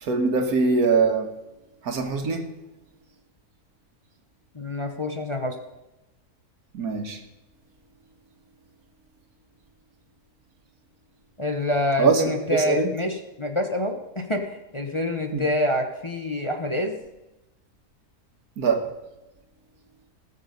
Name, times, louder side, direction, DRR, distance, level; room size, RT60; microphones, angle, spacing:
voice 1, 0.0-1.3 1.8-2.5 6.7-7.2 12.0-12.2 12.5-12.9 15.3-15.4 18.6-18.9, right 4 dB, 75° right, 6 dB, 1.9 m, -22 dB
voice 2, 4.5-5.5 11.4-17.0, left 1 dB, 25° left, 4 dB, 1.0 m, -26 dB
19.0 x 6.8 x 5.3 m, 1.0 s
omnidirectional pair, 1.6 m